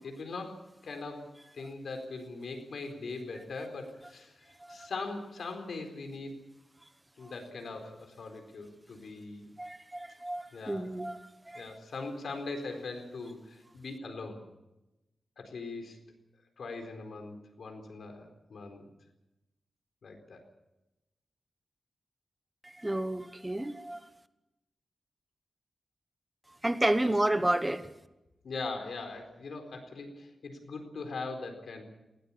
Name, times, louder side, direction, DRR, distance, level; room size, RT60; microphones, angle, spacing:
voice 1, 0.0-6.4 7.2-9.5 10.5-10.9 11.5-14.4 15.4-16.0 16.6-18.9 20.0-20.4 27.3-27.4 28.4-31.8, left 3 dB, 80° left, 5 dB, 4.3 m, -41 dB
voice 2, 9.6-11.2 11.5-11.7 22.6-24.0 26.6-27.9, right 1 dB, 15° right, 11 dB, 1.1 m, -30 dB
19.5 x 18.5 x 8.7 m, 0.97 s
wide cardioid pair, 100°, 0 cm